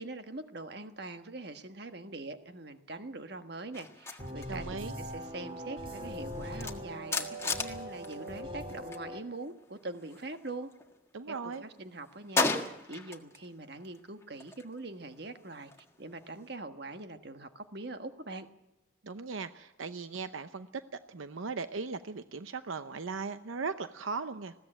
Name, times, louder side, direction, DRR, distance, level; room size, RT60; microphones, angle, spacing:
voice 1, 0.0-10.7 11.3-15.7 16.0-18.5, right 2 dB, 55° right, 8 dB, 1.4 m, -43 dB
sound 1, 3.7-9.1 9.3-11.0 11.3-13.5 13.8-16.5, left 3 dB, 15° left, 1.5 m, -37 dB
sound 2, 4.2-9.2, equal, 25° right, 2.0 m, -41 dB
voice 2, 4.5-4.9 11.1-11.6 19.0-20.7 21.1-24.5, right 4 dB, 85° right, 11 dB, 0.7 m, -38 dB
20.5 x 16.0 x 8.9 m, 0.98 s
head